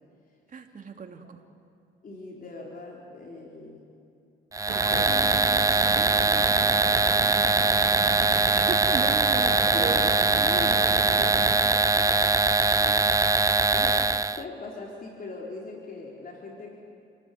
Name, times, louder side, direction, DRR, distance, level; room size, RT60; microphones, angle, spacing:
voice 1, 0.5-1.4 5.9-6.6 8.3-10.0, right 6 dB, 40° right, 4 dB, 2.8 m, -37 dB
voice 2, 2.0-3.9 4.7-5.4 6.6-6.9 8.9-9.0 9.4-13.1 13.7-16.8, left 3 dB, 45° left, -1 dB, 4.2 m, -40 dB
sound 1, 4.5-14.4, right 3 dB, 15° right, 0.6 m, -22 dB
sound 2, 4.7-11.6, right 10 dB, 85° right, 1.4 m, -36 dB
sound 3, 4.9-8.3, left 5 dB, 75° left, 5.4 m, -46 dB
29.5 x 19.0 x 9.5 m, 2.6 s
cardioid pair, 90°, 20 cm